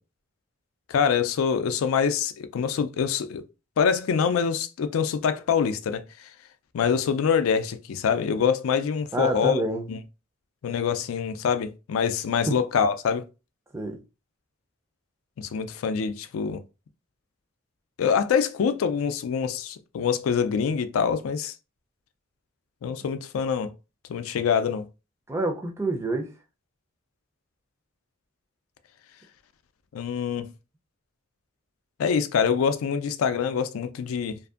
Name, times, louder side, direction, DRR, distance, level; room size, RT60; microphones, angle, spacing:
voice 1, 0.9-3.4 3.8-6.0 6.7-9.6 9.9-10.0 10.6-13.2 15.4-16.6 18.0-21.5 22.8-23.7 24.1-24.9 29.9-30.5 32.0-34.4, left 6 dB, 90° left, 0.3 m, -25 dB
voice 2, 9.1-9.9 12.5-12.6 13.7-14.0 25.3-26.3, right 2 dB, 15° right, 0.4 m, -27 dB
2.6 x 2.4 x 2.4 m
head